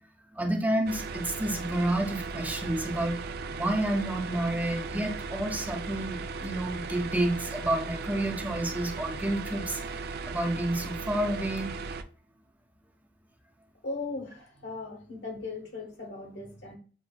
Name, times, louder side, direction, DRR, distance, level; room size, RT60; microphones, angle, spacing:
voice 1, 0.3-3.2 3.5-11.7, right 1 dB, 10° right, 0.6 m, -30 dB
sound 1, 0.9-12.0, right 4 dB, 55° right, 0.4 m, -37 dB
voice 2, 13.8-16.7, left 3 dB, 65° left, 1.2 m, -38 dB
7.5 x 2.6 x 2.3 m
head